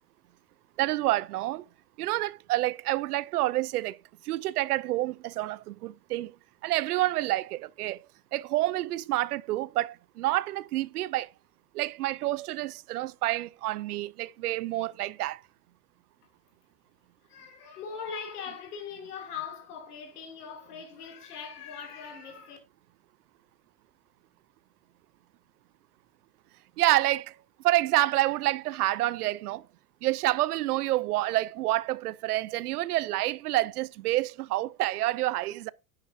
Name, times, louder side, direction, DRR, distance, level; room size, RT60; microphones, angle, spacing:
voice 1, 0.8-1.6 2.0-4.0 4.2-6.3 6.6-8.0 8.3-11.3 11.7-15.4 26.8-27.4 27.6-29.7 30.0-35.7, right 16 dB, 85° right, 0.6 m, -28 dB
voice 2, 17.3-22.6, left 6 dB, 85° left, 2.9 m, -40 dB
10.0 x 8.9 x 2.7 m
hypercardioid pair, 105°, 45 cm